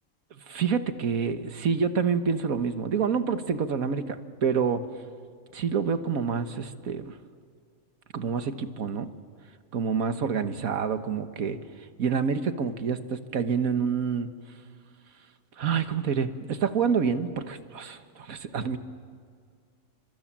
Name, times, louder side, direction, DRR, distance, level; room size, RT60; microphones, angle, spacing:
voice 1, 0.4-4.9 5.5-7.2 8.1-9.1 9.7-11.6 12.0-14.3 15.6-18.8, right 6 dB, 90° right, 9 dB, 1.8 m, -27 dB
30.0 x 24.5 x 7.5 m, 2.1 s
omnidirectional pair, 1.4 m